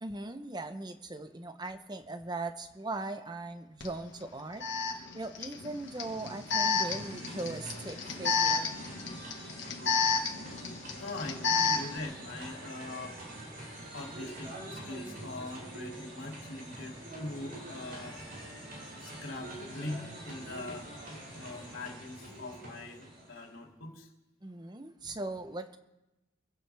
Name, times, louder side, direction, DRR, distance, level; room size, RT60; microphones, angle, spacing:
voice 1, 0.0-4.7 5.1-8.7 24.4-25.8, right 2 dB, 20° right, 9 dB, 0.8 m, -39 dB
Alarm, 3.8-3.9 4.6-12.0, left 5 dB, 60° left, 1.7 m, -31 dB
sound 1, 5.6-23.6, right 1 dB, 50° right, 6.6 m, -45 dB
voice 2, 11.0-13.2 13.9-18.3 19.0-20.9 21.3-24.1, left 2 dB, 90° left, 0 dB, 2.8 m, -42 dB
25.5 x 16.0 x 3.5 m, 1.0 s
head